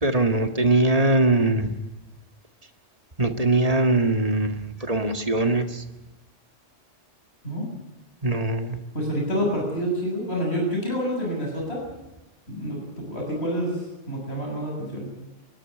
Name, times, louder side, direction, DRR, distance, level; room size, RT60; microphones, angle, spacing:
voice 1, 0.0-1.8 3.2-5.8 8.2-8.8, right 2 dB, 30° right, 7 dB, 1.9 m, -22 dB
voice 2, 8.9-11.8 12.5-15.1, equal, 55° left, -2 dB, 7.5 m, -28 dB
29.5 x 11.5 x 9.8 m, 0.98 s
omnidirectional pair, 1.3 m